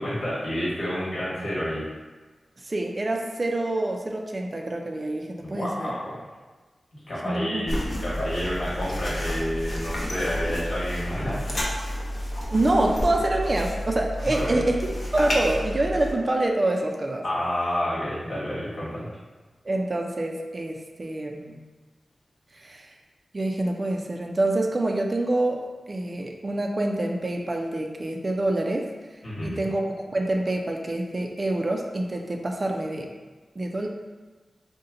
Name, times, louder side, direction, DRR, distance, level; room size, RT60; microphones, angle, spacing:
voice 1, 0.0-1.8 5.4-6.2 7.1-11.5 14.2-14.6 17.2-19.1 29.2-29.6, equal, 70° left, -8 dB, 1.3 m, -29 dB
voice 2, 2.6-5.9 7.2-7.7 12.5-17.2 19.7-21.6 22.6-22.9 23.3-28.9 29.4-33.1 33.6-33.9, right 2 dB, 45° right, 2 dB, 0.4 m, -26 dB
sound 1, 7.7-16.1, equal, 55° left, 0.7 m, -30 dB
2.8 x 2.1 x 3.7 m, 1.3 s
cardioid pair, 45°, 0 cm